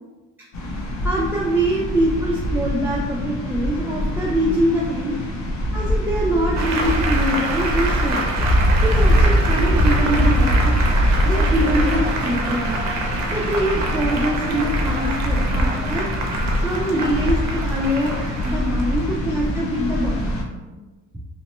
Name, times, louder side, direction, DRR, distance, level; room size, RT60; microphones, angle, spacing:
sound 1, 0.5-20.4, equal, 60° left, 0.7 m, -22 dB
voice 1, 1.0-5.2 5.7-8.2 8.8-10.8 11.2-12.7 13.3-16.1 16.5-18.2 18.4-20.4, equal, 5° right, -6 dB, 0.3 m, -23 dB
Applause, 6.5-19.5, right 2 dB, 55° right, 0.6 m, -27 dB
2.9 x 2.1 x 3.0 m, 1.2 s
cardioid pair, 105°, 32 cm